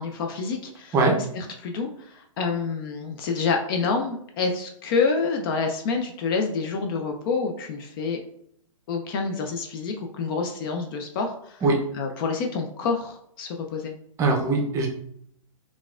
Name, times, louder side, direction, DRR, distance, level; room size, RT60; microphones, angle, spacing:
voice 1, 0.0-1.0 1.3-8.2 8.9-11.6 11.9-13.9, left 4 dB, 40° left, 3 dB, 0.4 m, -27 dB
voice 2, 14.2-14.9, right 3 dB, 15° right, 1 dB, 0.6 m, -21 dB
3.8 x 2.4 x 2.4 m, 0.68 s
hypercardioid pair, 130°, 17 cm